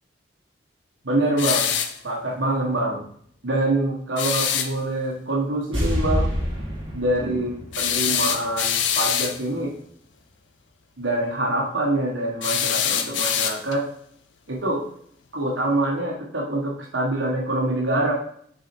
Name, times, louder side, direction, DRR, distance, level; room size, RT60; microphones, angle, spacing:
voice 1, 1.0-1.7 2.0-3.0 3.4-6.3 6.9-9.7 11.0-13.8 14.5-14.8 15.3-18.1, right 1 dB, 75° right, -2 dB, 1.2 m, -25 dB
sound 1, 1.4-2.0 4.2-4.7 7.7-9.4 12.4-13.8, left 8 dB, 80° left, 0.6 m, -24 dB
sound 2, 5.7-8.9 9.2-9.3, equal, 30° right, 2.6 m, -27 dB
6.3 x 4.1 x 4.3 m, 0.64 s
head